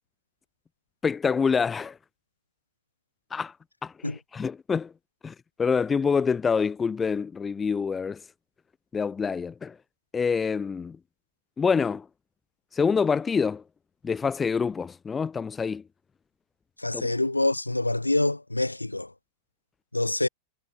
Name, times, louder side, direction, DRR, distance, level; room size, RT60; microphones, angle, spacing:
voice 1, 1.0-2.0 3.3-3.5 3.8-4.9 5.2-8.2 8.9-9.8 10.1-11.0 11.6-12.1 12.7-13.6 14.0-15.8 16.9-17.0, left 5 dB, 15° left, 0.4 m, -26 dB
voice 2, 16.8-19.1 19.9-20.3, left 2 dB, 85° left, 1.2 m, -26 dB
figure-of-eight pair, 90°, 0 cm